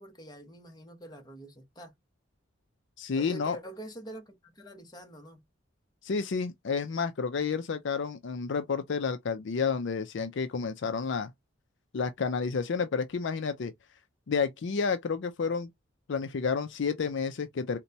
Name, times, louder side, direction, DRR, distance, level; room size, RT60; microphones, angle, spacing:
voice 1, 0.0-1.9 3.2-5.4, right 1 dB, 20° left, 0.9 m, -46 dB
voice 2, 3.0-3.6 6.0-11.3 11.9-13.7 14.3-15.7 16.1-17.8, left 5 dB, 65° left, 0.4 m, -30 dB
4.1 x 2.2 x 2.7 m
head